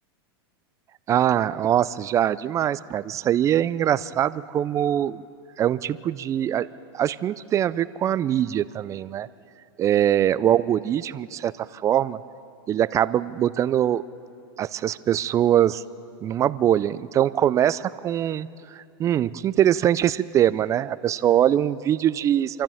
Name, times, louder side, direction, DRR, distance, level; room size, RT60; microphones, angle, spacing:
voice 1, 1.1-5.2 5.6-6.7 6.9-9.3 9.8-12.2 12.7-14.0 14.6-15.8 16.2-22.6, right 11 dB, 25° right, 17 dB, 0.4 m, -23 dB
26.5 x 14.0 x 7.1 m, 2.5 s
supercardioid pair, 130°, 13 cm